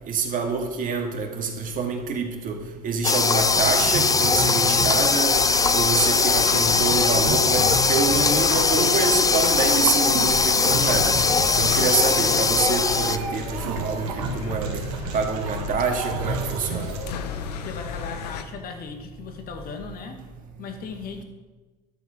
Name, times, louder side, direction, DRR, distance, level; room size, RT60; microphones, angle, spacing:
voice 1, 0.1-2.6 2.8-5.4 5.7-11.1 11.6-14.8 15.1-16.9, right 4 dB, 40° right, 3 dB, 2.4 m, -26 dB
sound 1, 3.0-13.2, left 4 dB, 15° left, 0.6 m, -20 dB
sound 2, 3.4-17.1, right 5 dB, 70° right, 1.5 m, -33 dB
sound 3, 5.3-18.4, left 6 dB, 80° left, 0.9 m, -34 dB
voice 2, 17.6-20.2 20.6-21.2, left 5 dB, 45° left, 5 dB, 1.9 m, -37 dB
12.5 x 8.1 x 6.2 m, 1.2 s
hypercardioid pair, 75°, 20 cm